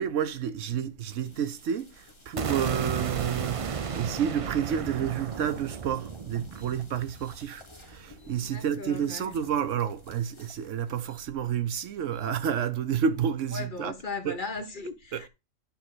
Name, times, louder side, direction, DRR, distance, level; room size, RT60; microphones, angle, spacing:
voice 1, 0.0-14.0 14.2-14.4 15.1-15.3, right 8 dB, 70° right, 1.1 m, -30 dB
sound 1, 1.1-11.1, left 3 dB, 25° left, 1.2 m, -55 dB
sound 2, 2.4-8.4, right 6 dB, 55° right, 0.3 m, -34 dB
sound 3, 6.4-7.4 7.8-8.6 10.9-11.3 12.1-12.3, left 2 dB, 80° left, 2.1 m, -62 dB
voice 2, 8.3-9.3 13.5-15.3, left 4 dB, 40° left, 1.1 m, -38 dB
10.5 x 3.6 x 6.1 m
omnidirectional pair, 1.3 m